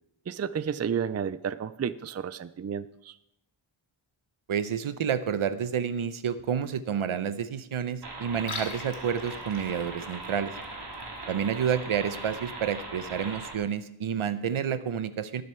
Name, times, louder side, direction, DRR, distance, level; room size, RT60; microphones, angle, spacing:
voice 1, 0.3-3.1, right 7 dB, 35° right, 15 dB, 0.5 m, -31 dB
voice 2, 4.5-10.5 11.3-15.4, right 8 dB, 75° right, 13 dB, 0.8 m, -29 dB
sound 1, 8.0-13.5, right 2 dB, 50° right, 2.6 m, -40 dB
Liquid, 8.3-13.3, left 3 dB, 75° left, 2.6 m, -45 dB
19.0 x 6.7 x 4.5 m, 0.79 s
wide cardioid pair, 70°, 50 cm